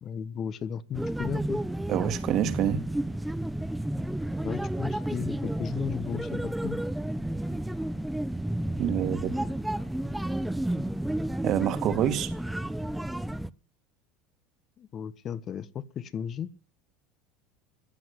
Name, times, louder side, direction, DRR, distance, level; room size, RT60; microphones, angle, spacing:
voice 1, 0.0-1.6 4.4-6.8 14.8-16.5, left 8 dB, 40° left, 1.2 m, -35 dB
sound 1, 0.9-13.5, right 1 dB, 5° right, 0.8 m, -31 dB
voice 2, 1.9-2.9 8.8-9.3 11.4-12.3, right 11 dB, 50° right, 2.1 m, -27 dB
15.5 x 7.7 x 9.7 m
hypercardioid pair, 85°, 0 cm